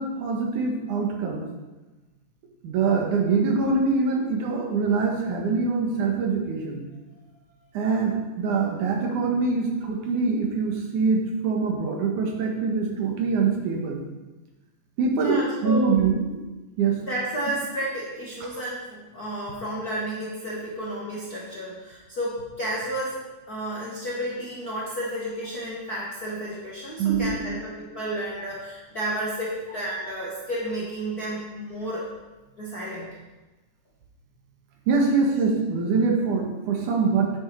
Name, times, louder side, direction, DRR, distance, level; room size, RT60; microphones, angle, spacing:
voice 1, 0.0-1.5 2.6-6.8 7.7-14.0 15.0-16.4 16.8-17.0 18.4-18.5 27.0-27.6 34.9-37.3, right 4 dB, 70° right, 0 dB, 2.7 m, -24 dB
voice 2, 15.2-15.9 17.1-23.2 23.5-32.1 32.6-33.1, right 1 dB, 45° left, -6 dB, 1.2 m, -32 dB
9.0 x 8.8 x 4.5 m, 1.2 s
omnidirectional pair, 3.9 m